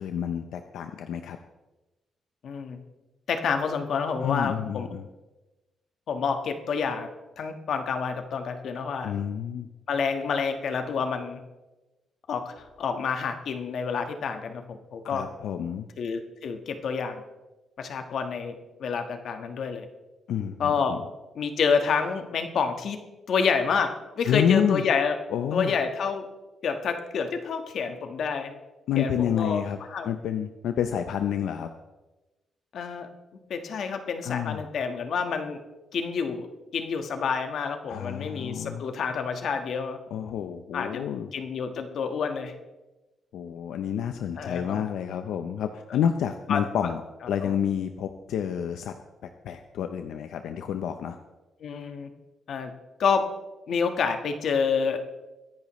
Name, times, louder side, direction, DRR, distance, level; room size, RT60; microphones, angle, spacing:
voice 1, 0.0-1.4 4.2-5.1 9.0-9.7 15.0-15.9 20.3-21.0 24.3-24.8 25.3-25.7 28.9-29.8 30.0-31.7 34.2-34.7 37.9-38.8 40.1-41.3 43.3-47.0 47.3-48.9 49.2-51.2, left 9 dB, 90° left, 7 dB, 0.7 m, -29 dB
voice 2, 2.4-2.8 3.3-4.9 6.1-7.1 7.4-9.1 9.9-11.4 12.3-15.3 16.0-17.2 17.8-19.9 20.6-21.0 21.3-23.0 23.3-25.2 25.5-26.2 26.6-28.5 28.9-29.6 29.9-30.1 32.7-33.1 33.5-35.6 35.9-36.5 36.7-40.0 40.7-41.0 41.3-42.5 44.4-44.8 45.9-46.0 46.5-46.9 47.4-47.5 51.6-52.1 52.5-52.7 53.0-53.3 53.7-55.0, left 5 dB, 65° left, 6 dB, 1.4 m, -28 dB
23.0 x 10.5 x 3.1 m, 1.1 s
cardioid pair, 125°, 0 cm